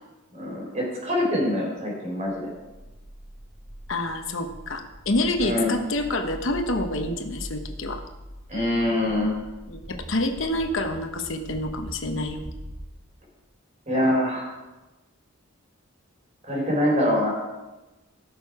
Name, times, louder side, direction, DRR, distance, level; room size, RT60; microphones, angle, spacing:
voice 1, 0.3-2.4 5.4-5.7 8.5-9.3 13.9-14.5 16.4-17.3, left 1 dB, 35° right, -1 dB, 4.2 m, -24 dB
sound 1, 2.2-12.8, equal, 80° right, 3.2 m, -42 dB
voice 2, 3.9-8.0 9.7-12.4, left 1 dB, 65° left, 6 dB, 1.0 m, -27 dB
17.0 x 6.5 x 4.8 m, 1.1 s
head